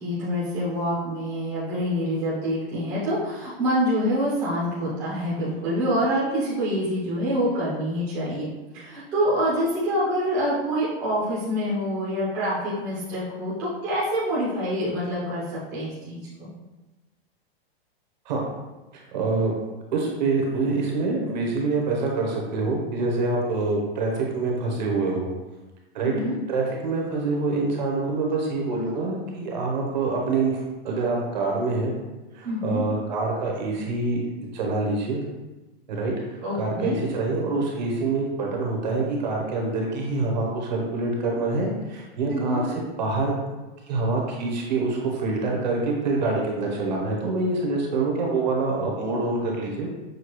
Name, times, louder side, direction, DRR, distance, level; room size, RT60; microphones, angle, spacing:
voice 1, 0.0-8.5 8.7-16.5 26.1-26.3 32.4-32.8 36.4-37.0 42.3-42.6, equal, 10° right, -10 dB, 0.6 m, -26 dB
voice 2, 18.9-19.5 19.9-25.3 25.9-26.1 26.5-30.5 30.8-31.9 32.3-34.2 34.5-35.2 35.9-36.1 36.6-42.6 43.0-43.3 43.9-49.9, right 3 dB, 45° right, -1 dB, 0.9 m, -25 dB
6.4 x 2.3 x 3.0 m, 1.1 s
supercardioid pair, 175°, 31 cm